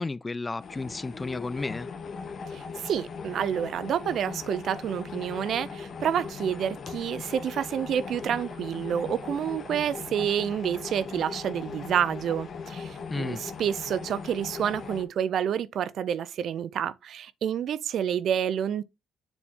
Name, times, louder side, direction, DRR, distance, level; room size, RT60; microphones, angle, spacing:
voice 1, 0.0-1.9 13.1-13.4, left 3 dB, 20° left, 0.3 m, -32 dB
sound 1, 0.6-15.0, left 5 dB, 50° left, 1.3 m, -39 dB
voice 2, 2.5-18.8, right 9 dB, 65° right, 0.4 m, -29 dB
7.0 x 4.1 x 3.5 m
cardioid pair, 110°, 0 cm